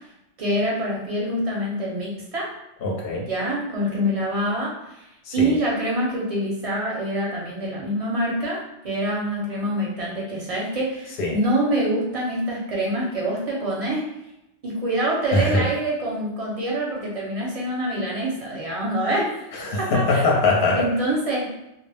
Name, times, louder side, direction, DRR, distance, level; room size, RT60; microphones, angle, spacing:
voice 1, 0.4-2.5 3.2-5.1 5.3-14.1 14.6-19.3 19.8-20.4 20.7-21.5, right 1 dB, 35° right, -4 dB, 0.7 m, -25 dB
voice 2, 2.8-3.3 5.3-5.6 11.2-11.4 15.3-15.7 19.5-20.9, left 2 dB, 55° left, -2 dB, 0.7 m, -22 dB
2.2 x 2.0 x 3.2 m, 0.87 s
omnidirectional pair, 1.2 m